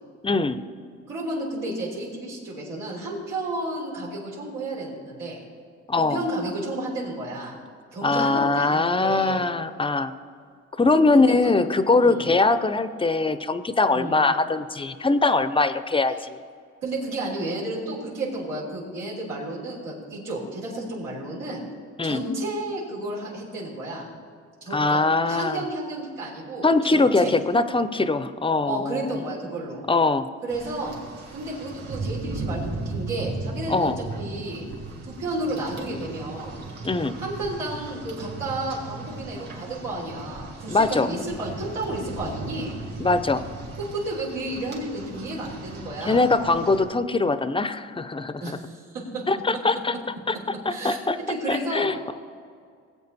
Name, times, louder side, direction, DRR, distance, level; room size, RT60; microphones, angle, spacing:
voice 1, 0.2-0.6 5.9-6.2 8.0-10.1 10.8-16.4 22.0-22.2 24.7-25.6 26.6-29.2 29.9-30.3 33.7-34.0 36.8-37.2 40.7-41.1 43.0-43.4 46.1-48.6 49.3-49.9 50.3-50.4 50.7-51.2 51.5-52.1, left 3 dB, 15° left, 12 dB, 0.6 m, -22 dB
voice 2, 1.1-5.4 6.0-7.5 7.9-9.4 11.1-11.5 12.0-12.3 13.9-14.2 16.8-21.6 22.0-24.1 24.6-26.7 26.9-27.3 28.7-29.9 30.4-31.0 31.3-34.7 35.0-36.6 37.2-42.8 43.8-46.3 48.4-49.2 50.7-51.9, right 2 dB, 90° right, -6 dB, 3.5 m, -32 dB
Rain, 30.5-46.8, right 3 dB, 55° right, 3.3 m, -37 dB
18.5 x 8.3 x 4.1 m, 2.1 s
cardioid pair, 90°, 30 cm